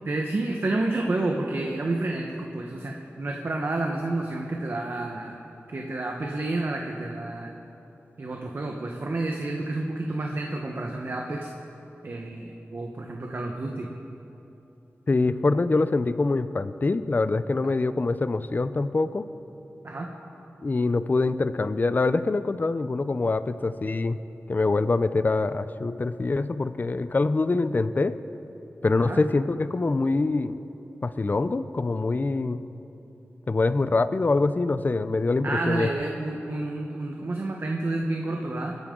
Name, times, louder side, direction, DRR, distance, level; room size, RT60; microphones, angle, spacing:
voice 1, 0.0-5.4 5.7-7.5 8.2-11.5 12.0-13.9 19.8-20.1 29.0-29.2 35.4-38.8, right 2 dB, 50° right, 1 dB, 1.1 m, -30 dB
voice 2, 15.1-19.3 20.6-24.2 24.5-28.2 28.8-30.6 31.0-32.6 33.5-35.9, left 3 dB, 40° left, 12 dB, 0.5 m, -24 dB
28.0 x 10.5 x 3.8 m, 3.0 s
wide cardioid pair, 85°, 5 cm